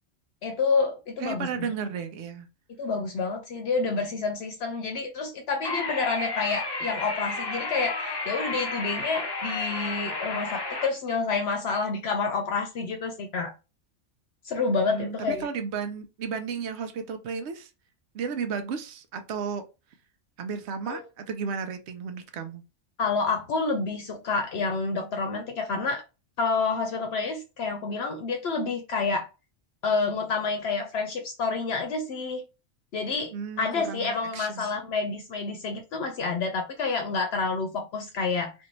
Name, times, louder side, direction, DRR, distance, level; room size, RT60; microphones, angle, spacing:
voice 1, 0.4-1.8 2.8-13.5 14.4-15.5 20.9-21.0 23.0-26.0 26.4-29.3 29.8-32.4 32.9-38.5, left 4 dB, 65° left, 0.8 m, -28 dB
voice 2, 1.2-2.5 14.9-17.7 18.1-19.6 20.4-22.6 33.3-34.7, right 6 dB, 75° right, 0.9 m, -33 dB
sound 1, 5.6-10.9, left 3 dB, 35° left, 0.4 m, -32 dB
2.6 x 2.6 x 3.0 m
omnidirectional pair, 1.2 m